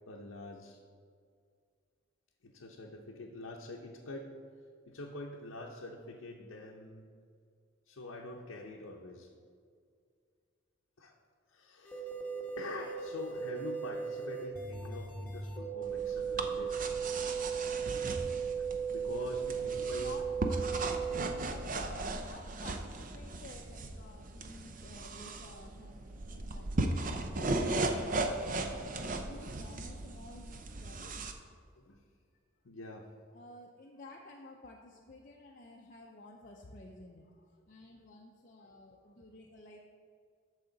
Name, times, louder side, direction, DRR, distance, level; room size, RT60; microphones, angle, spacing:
voice 1, 0.1-0.8 2.4-4.3 4.9-7.1 7.9-9.3 11.0-11.1 11.5-12.1 12.6-16.8 18.6-20.2 31.8-32.0 32.6-33.1, left 2 dB, 85° left, -1 dB, 0.8 m, -45 dB
sound 1, 11.8-21.2, right 6 dB, 10° left, 1.1 m, -36 dB
sound 2, 15.8-31.3, right 2 dB, 40° right, 0.5 m, -37 dB
voice 2, 19.8-20.9 21.4-31.3 33.3-39.8, left 2 dB, 40° left, -1 dB, 0.5 m, -52 dB
13.5 x 4.9 x 3.9 m, 2.2 s
head